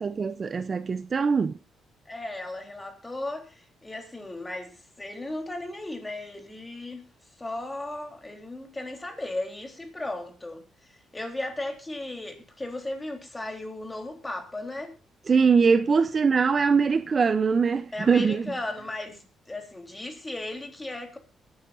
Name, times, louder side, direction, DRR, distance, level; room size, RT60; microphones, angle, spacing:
voice 1, 0.0-1.6 15.3-18.4, right 5 dB, 40° right, 0.6 m, -22 dB
voice 2, 2.1-7.1 7.4-14.9 17.9-21.2, left 2 dB, 15° left, 3.6 m, -36 dB
23.5 x 9.7 x 2.6 m
cardioid pair, 90°, 0 cm